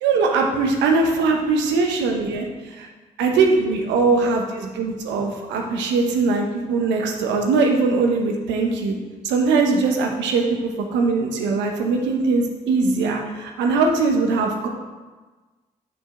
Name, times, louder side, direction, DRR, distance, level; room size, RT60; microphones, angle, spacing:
voice 1, 0.0-2.9 3.2-9.0 9.2-14.7, right 4 dB, 85° right, 2 dB, 1.0 m, -21 dB
7.5 x 6.7 x 4.9 m, 1.3 s
hypercardioid pair, 40°, 18 cm